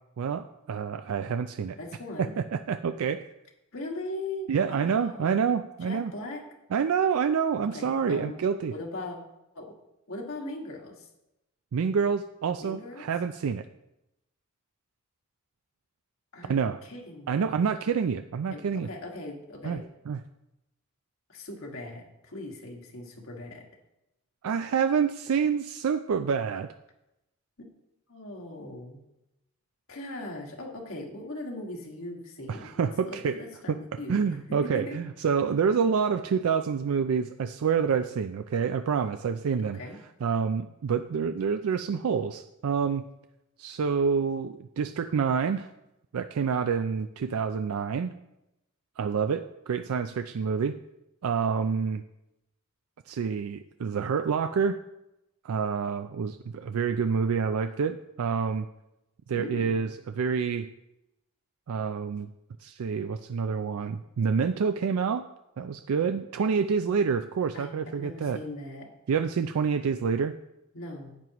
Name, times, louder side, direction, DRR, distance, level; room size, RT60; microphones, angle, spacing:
voice 1, 0.2-1.8 2.2-3.2 4.5-6.1 6.7-8.7 11.7-13.7 16.5-16.8 17.3-18.9 19.6-20.2 24.4-26.7 32.5-33.4 33.7-33.8 34.1-39.8 40.2-43.0 43.6-45.7 46.1-48.1 49.0-50.8 51.2-52.0 53.1-54.8 55.4-58.7 59.3-60.7 61.7-62.3 62.6-65.3 65.6-68.4 69.1-70.3, right 6 dB, 85° right, 9 dB, 0.4 m, -27 dB
voice 2, 1.7-2.3 3.7-5.4 5.8-6.4 7.7-8.4 8.7-9.2 9.6-9.7 10.1-11.1 12.6-13.1 16.3-16.5 16.9-17.5 18.5-19.8 21.3-23.6 27.6-27.7 28.1-29.0 29.9-35.0 39.6-40.0 59.3-60.0 67.5-68.9 70.7-71.2, left 2 dB, 75° left, 0 dB, 1.8 m, -39 dB
10.5 x 9.4 x 3.0 m, 0.89 s
head